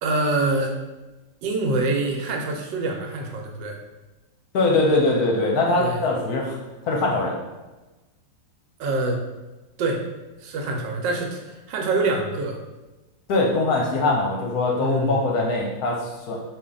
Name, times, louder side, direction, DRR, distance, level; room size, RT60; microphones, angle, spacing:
voice 1, 0.0-0.7 1.4-3.8 5.8-6.0 8.8-9.2 9.8-10.0 10.4-12.6 14.8-15.3, right 2 dB, 80° right, 2 dB, 1.3 m, -25 dB
voice 2, 4.5-6.6 6.8-7.4 13.3-16.4, left 2 dB, 65° left, 0 dB, 1.1 m, -22 dB
4.4 x 2.8 x 3.8 m, 1.1 s
omnidirectional pair, 2.0 m